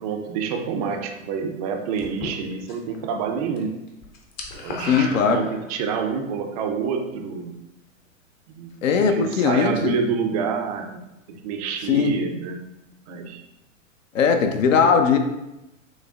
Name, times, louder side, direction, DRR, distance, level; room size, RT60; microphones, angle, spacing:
voice 1, 0.0-3.8 4.6-7.5 8.5-8.7 9.0-12.6 13.1-13.4, right 6 dB, 30° right, 4 dB, 0.4 m, -28 dB
sound 1, 2.0-3.0 3.3-3.6 3.9-6.0, left 3 dB, 25° left, 0.5 m, -35 dB
voice 2, 4.8-5.4 8.8-9.9 11.9-12.1 14.1-15.2, left 6 dB, 75° left, 6 dB, 0.6 m, -19 dB
6.1 x 2.1 x 2.4 m, 0.94 s
hypercardioid pair, 105°, 39 cm